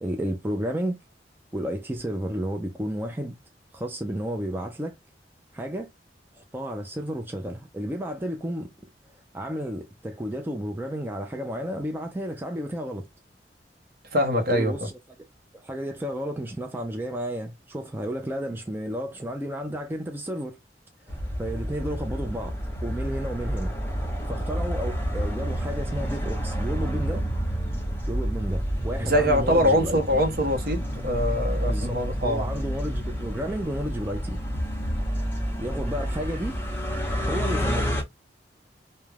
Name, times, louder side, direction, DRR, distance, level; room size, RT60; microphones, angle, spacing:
voice 1, 0.0-1.0 1.5-3.4 3.7-5.0 5.5-5.9 6.3-8.7 9.3-13.1 14.5-14.9 15.5-20.6 21.1-22.6 22.8-23.7 24.3-27.2 28.1-30.2 31.6-34.4 35.6-36.6 37.3-38.0, equal, 10° right, 0.3 m, -32 dB
voice 2, 14.1-14.7 29.0-32.5, equal, 55° right, 0.7 m, -23 dB
sound 1, 21.1-38.0, equal, 15° left, 0.8 m, -29 dB
2.3 x 2.1 x 3.1 m
head